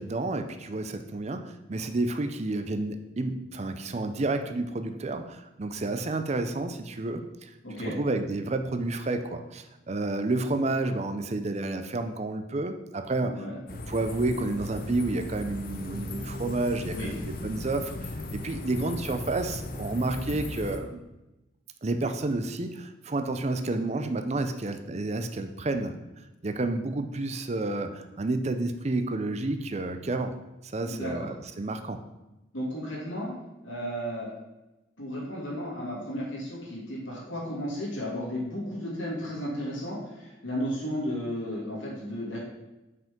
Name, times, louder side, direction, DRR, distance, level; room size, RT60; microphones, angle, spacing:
voice 1, 0.0-7.5 7.9-13.4 13.7-21.0 21.8-25.9 26.4-30.4 30.6-32.0, right 2 dB, 35° right, 8 dB, 0.5 m, -30 dB
voice 2, 7.6-8.0 13.2-13.6 16.9-17.1 30.8-31.3 32.5-33.3 33.6-34.3 35.0-42.4, equal, 80° left, -5 dB, 2.4 m, -34 dB
sound 1, 13.7-20.8, left 2 dB, 50° left, 0.7 m, -37 dB
6.1 x 5.2 x 5.2 m, 0.99 s
head